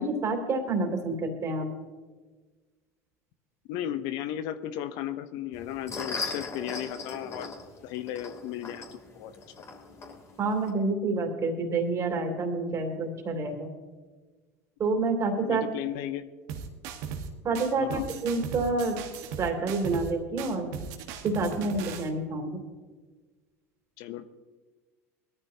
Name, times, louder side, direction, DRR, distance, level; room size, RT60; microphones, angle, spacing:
voice 1, 0.0-1.7 10.4-13.7 14.8-15.6 17.4-19.0 19.4-20.7 21.2-22.6, right 3 dB, 40° right, 3 dB, 3.0 m, -28 dB
voice 2, 3.7-7.5 7.8-9.3 15.5-16.2 17.8-18.0 24.0-24.3, left 11 dB, 65° left, 12 dB, 0.8 m, -35 dB
sound 1, 5.5-10.7, left 4 dB, 35° left, 3.1 m, -39 dB
sound 2, 16.5-17.3 17.5-20.1 20.4-22.1, right 6 dB, 65° right, 1.4 m, -38 dB
21.0 x 13.0 x 2.9 m, 1.4 s
hypercardioid pair, 80°, 8 cm